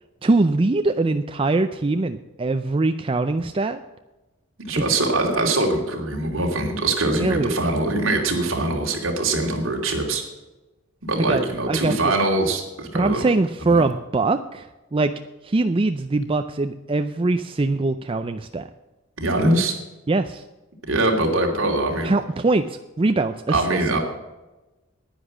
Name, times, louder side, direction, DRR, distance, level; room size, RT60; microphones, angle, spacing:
voice 1, 0.2-3.8 7.2-7.7 11.2-12.1 12.9-14.7 14.9-15.1 15.4-18.7 20.1-20.4 22.0-23.8, right 2 dB, 25° right, 8 dB, 0.4 m, -22 dB
voice 2, 4.6-10.2 11.0-13.3 13.7-13.8 19.2-19.7 20.9-22.1 23.5-24.0, right 2 dB, 65° right, 1 dB, 2.8 m, -22 dB
10.0 x 10.0 x 7.2 m, 1.1 s
head